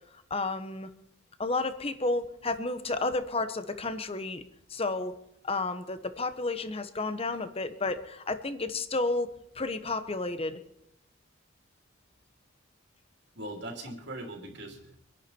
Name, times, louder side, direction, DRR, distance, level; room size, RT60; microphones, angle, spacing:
voice 1, 0.3-0.9 1.4-4.4 4.7-5.2 5.4-9.3 9.5-10.6, left 3 dB, 30° left, 10 dB, 1.1 m, -31 dB
voice 2, 13.3-15.0, right 1 dB, 60° right, 2 dB, 3.2 m, -40 dB
25.5 x 11.0 x 4.4 m, 0.79 s
head